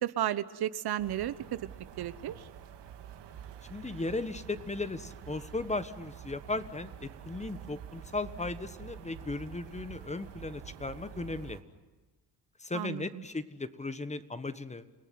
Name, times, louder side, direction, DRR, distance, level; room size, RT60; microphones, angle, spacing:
voice 1, 0.0-1.6 2.0-2.5 12.7-13.2, right 12 dB, 65° right, 15 dB, 1.1 m, -33 dB
sound 1, 1.0-11.6, right 9 dB, 85° right, 2.3 m, -47 dB
voice 2, 3.7-11.6 12.6-14.8, left 2 dB, 15° left, 13 dB, 1.3 m, -36 dB
29.0 x 18.5 x 9.6 m, 1.2 s
cardioid pair, 105°, 40 cm